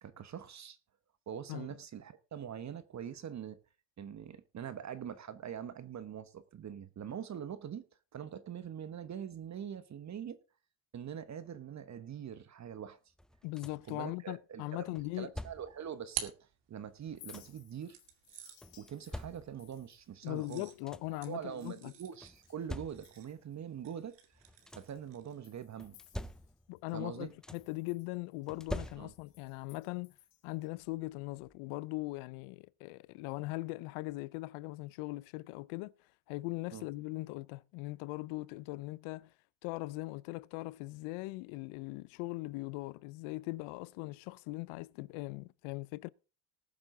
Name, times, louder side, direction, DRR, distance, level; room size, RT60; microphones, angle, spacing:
voice 1, 0.0-0.8 1.3-3.6 4.0-7.8 8.1-10.4 10.9-13.0 13.9-18.0 18.8-20.7 21.3-24.2 24.7-26.0 26.9-27.3 29.0-29.1 36.7-36.9, right 8 dB, 35° right, 1.1 m, -43 dB
sound 1, 13.2-14.0 14.9-15.9 16.8-17.7 18.6-19.8 20.4-20.5 20.7-21.3 22.2-23.4 24.3-25.1 25.8-26.8 27.1-27.8 28.5-29.5 30.8-30.9 31.4-31.6, left 1 dB, ahead, 0.5 m, -46 dB
voice 2, 13.4-15.3 20.2-21.9 26.7-30.1 30.4-35.9 36.3-39.3 39.6-46.1, left 21 dB, 75° left, 0.7 m, -40 dB
sound 2, 15.5-17.2 17.9-25.5, right 10 dB, 55° right, 2.4 m, -49 dB
Chink clink, 17.0-22.7 22.9-23.6 24.0-24.1 24.6-26.9 27.2-30.7, left 12 dB, 60° left, 2.4 m, -62 dB
19.5 x 7.3 x 3.7 m
supercardioid pair, 105°, 49 cm